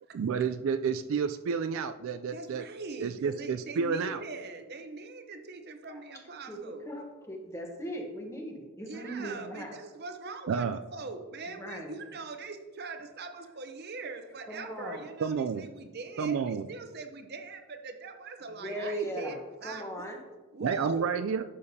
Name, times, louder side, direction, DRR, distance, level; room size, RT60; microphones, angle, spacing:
voice 1, 0.1-2.6 3.0-4.2 10.5-10.8 15.2-15.7 16.2-16.7 20.6-21.4, right 6 dB, 60° right, 10 dB, 0.3 m, -30 dB
voice 2, 2.3-6.9 8.9-19.9 20.5-21.1, right 3 dB, 45° right, 6 dB, 0.7 m, -42 dB
voice 3, 6.5-9.7 11.6-11.9 14.5-15.0 18.6-19.4 19.6-20.2, right 1 dB, 15° left, 2 dB, 1.0 m, -38 dB
11.5 x 6.9 x 2.8 m, 1.2 s
head